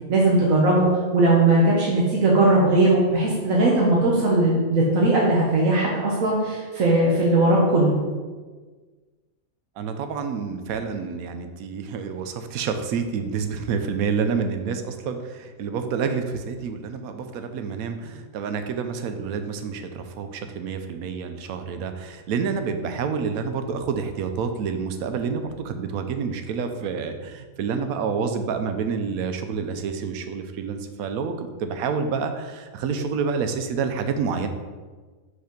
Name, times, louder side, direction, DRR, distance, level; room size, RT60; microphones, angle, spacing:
voice 1, 0.1-7.9, right 2 dB, 70° right, -4 dB, 1.3 m, -19 dB
voice 2, 9.8-34.5, right 5 dB, 90° right, 7 dB, 1.1 m, -28 dB
5.2 x 4.1 x 5.1 m, 1.4 s
omnidirectional pair, 1.5 m